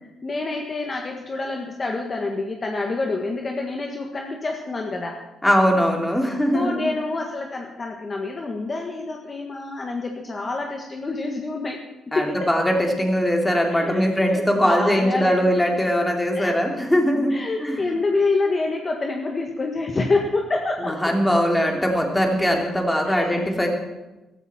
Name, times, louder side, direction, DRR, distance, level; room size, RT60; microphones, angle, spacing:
voice 1, 0.0-5.2 6.5-12.5 13.7-15.4 16.3-16.5 17.3-21.1 23.1-23.5, left 3 dB, 35° left, 2 dB, 1.6 m, -27 dB
voice 2, 5.4-6.9 12.1-17.9 20.8-23.7, equal, 10° left, 2 dB, 2.8 m, -21 dB
15.0 x 13.5 x 4.4 m, 1.1 s
cardioid pair, 90°, 0 cm